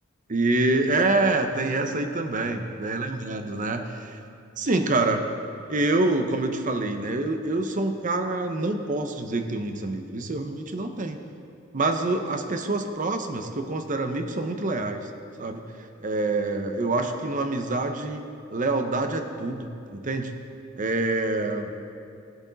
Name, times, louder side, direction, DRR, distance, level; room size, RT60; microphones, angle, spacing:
voice 1, 0.3-4.2 4.6-5.3 5.7-11.2 11.7-15.1 15.4-15.6 16.0-18.2 18.5-20.3 20.8-21.8, right 2 dB, 40° right, 6 dB, 0.8 m, -26 dB
18.0 x 7.9 x 4.0 m, 2.5 s
head